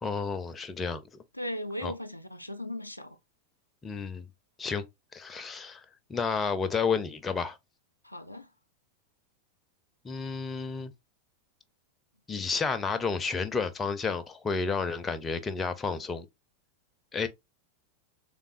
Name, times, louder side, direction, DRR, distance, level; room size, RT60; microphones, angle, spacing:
voice 1, 0.0-1.0 1.8-1.9 3.8-4.3 4.6-4.8 5.1-5.8 6.1-7.6 10.0-10.9 12.3-16.3 17.1-17.3, left 5 dB, 20° left, 0.5 m, -31 dB
voice 2, 1.3-3.2 8.0-8.5, left 1 dB, 90° left, 0.4 m, -37 dB
3.5 x 3.3 x 2.4 m
figure-of-eight pair, 90°, 0 cm